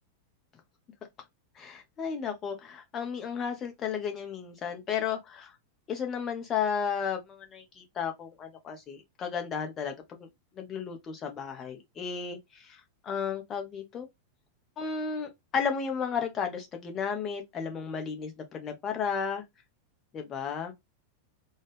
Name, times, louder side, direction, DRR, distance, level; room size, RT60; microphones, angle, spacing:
voice 1, 1.6-5.5 5.9-10.3 10.6-14.1 14.8-19.4 20.1-20.7, left 6 dB, 25° left, 1.2 m, -33 dB
4.0 x 2.5 x 3.5 m
figure-of-eight pair, 90°, 0 cm